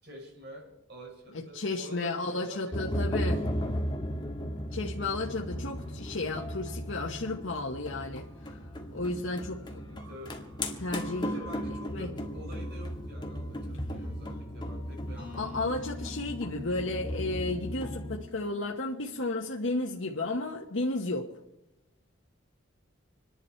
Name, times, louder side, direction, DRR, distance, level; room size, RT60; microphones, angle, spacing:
voice 1, 0.0-2.9 3.2-3.4 9.6-10.4 11.2-15.7, right 1 dB, 50° right, 0 dB, 6.2 m, -48 dB
voice 2, 1.3-3.4 4.7-8.6 8.9-9.6 10.8-11.3 11.9-12.1 15.2-21.3, left 2 dB, 70° left, 0 dB, 1.2 m, -33 dB
sound 1, 2.7-18.2, equal, 20° left, 1.7 m, -36 dB
sound 2, 15.2-20.7, left 6 dB, 5° right, 4.6 m, -49 dB
27.0 x 11.0 x 4.5 m, 0.90 s
head